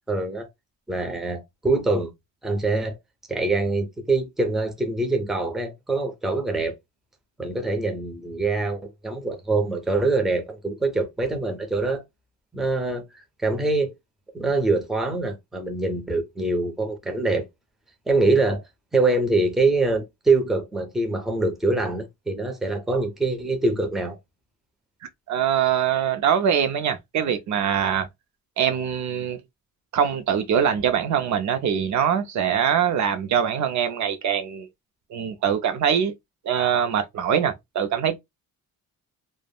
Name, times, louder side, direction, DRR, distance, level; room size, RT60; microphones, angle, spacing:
voice 1, 0.1-0.5 0.9-2.1 2.4-3.0 3.3-6.7 7.4-12.0 12.5-13.9 14.3-17.5 18.1-18.6 18.9-24.2, right 3 dB, ahead, 0.5 m, -24 dB
voice 2, 25.3-28.1 28.6-29.4 29.9-34.7 35.1-36.1 36.4-38.2, right 8 dB, 55° right, 0.5 m, -23 dB
3.4 x 2.0 x 2.2 m
cardioid pair, 140°, 35 cm